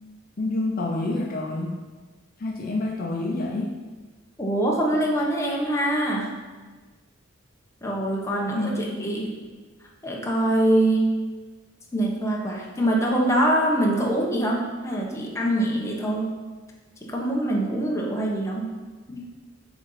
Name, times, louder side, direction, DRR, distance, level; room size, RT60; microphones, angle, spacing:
voice 1, 0.4-1.8 2.4-3.8 8.5-9.0, left 2 dB, 45° left, -1 dB, 0.7 m, -28 dB
voice 2, 4.4-6.3 7.8-9.3 10.0-11.1 11.9-16.3 17.0-18.7 19.1-19.2, right 1 dB, 15° left, -2 dB, 1.2 m, -24 dB
7.1 x 4.2 x 5.6 m, 1.3 s
head